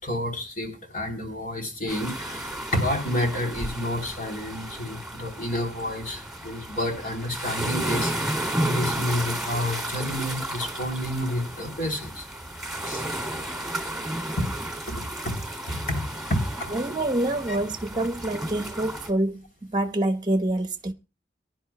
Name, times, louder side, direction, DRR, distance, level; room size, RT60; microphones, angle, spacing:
voice 1, 0.0-12.3 12.8-13.0 14.4-14.5 14.9-16.0 16.3-16.7 17.5-17.6, left 1 dB, 50° left, 3.2 m, -30 dB
sound 1, 1.9-19.1, right 1 dB, ahead, 2.4 m, -33 dB
voice 2, 16.7-20.9, right 1 dB, 25° right, 0.9 m, -26 dB
23.0 x 10.5 x 2.2 m
head